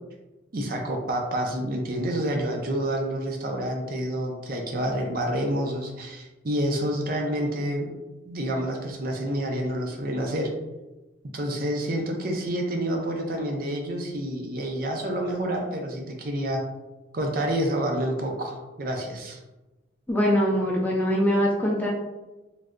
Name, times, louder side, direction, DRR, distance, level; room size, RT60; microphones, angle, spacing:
voice 1, 0.5-7.9 8.3-10.5 11.3-16.6 17.1-19.4, right 1 dB, 45° right, 1 dB, 0.5 m, -28 dB
voice 2, 20.1-21.9, equal, 10° left, -3 dB, 0.4 m, -22 dB
3.2 x 2.7 x 2.5 m, 1.1 s
head